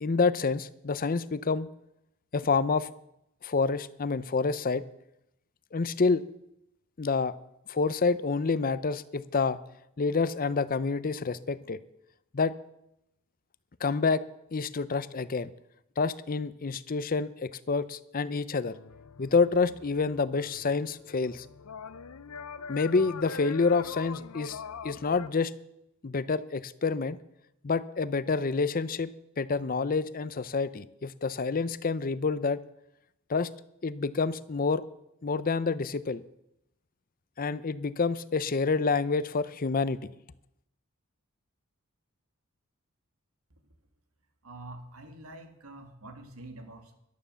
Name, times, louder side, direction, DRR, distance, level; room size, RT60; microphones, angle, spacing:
voice 1, 0.0-1.7 2.3-2.9 3.4-4.8 5.7-6.2 7.0-7.3 7.7-9.6 10.0-11.8 12.3-12.5 13.8-14.2 14.5-15.5 16.0-18.7 19.2-21.5 22.7-25.5 26.0-27.2 27.6-29.1 29.4-32.6 33.3-33.5 33.8-34.8 35.2-36.2 37.4-40.0, left 4 dB, 40° left, 16 dB, 0.6 m, -28 dB
sound 1, 18.7-25.3, left 6 dB, 90° left, 0.7 m, -43 dB
voice 2, 44.4-46.9, right 2 dB, 80° right, 6 dB, 2.4 m, -46 dB
14.5 x 11.5 x 6.9 m, 0.82 s
head